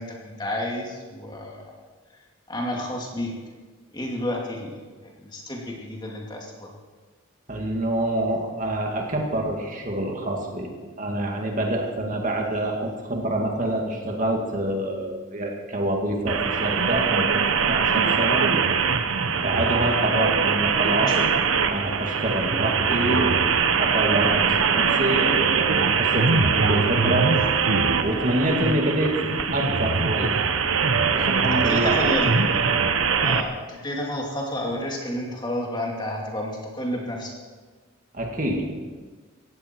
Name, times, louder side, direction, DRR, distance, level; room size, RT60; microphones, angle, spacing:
voice 1, 0.0-1.8 2.5-3.3 3.9-4.8 5.2-6.7 20.1-20.2 21.0-21.3 31.5-32.7 33.1-37.4, left 1 dB, 20° left, -1 dB, 2.6 m, -31 dB
voice 2, 7.5-10.7 11.0-18.5 19.4-21.1 21.7-23.5 23.8-24.5 24.7-27.3 28.0-29.2 29.5-30.3 31.1-32.2 38.1-38.7, right 1 dB, 40° right, 1 dB, 2.2 m, -26 dB
sound 1, 16.3-33.4, right 5 dB, 90° right, 1.0 m, -22 dB
18.0 x 16.0 x 4.6 m, 1.4 s
head